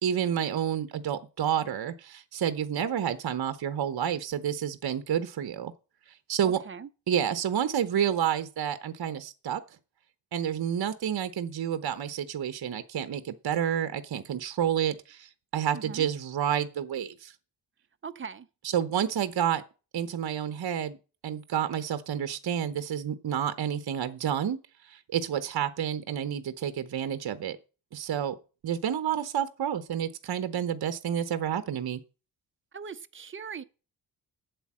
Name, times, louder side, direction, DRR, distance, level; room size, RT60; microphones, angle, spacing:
voice 1, 0.0-5.7 6.3-6.6 7.1-9.6 10.3-17.3 18.6-19.6 19.9-21.0 21.2-27.6 27.9-28.4 28.6-32.0, right 9 dB, 55° right, 0.9 m, -29 dB
voice 2, 6.4-6.9 15.7-16.1 18.0-18.5 32.7-33.6, right 6 dB, 30° right, 0.6 m, -40 dB
8.3 x 8.0 x 7.4 m
wide cardioid pair, 175°, 44 cm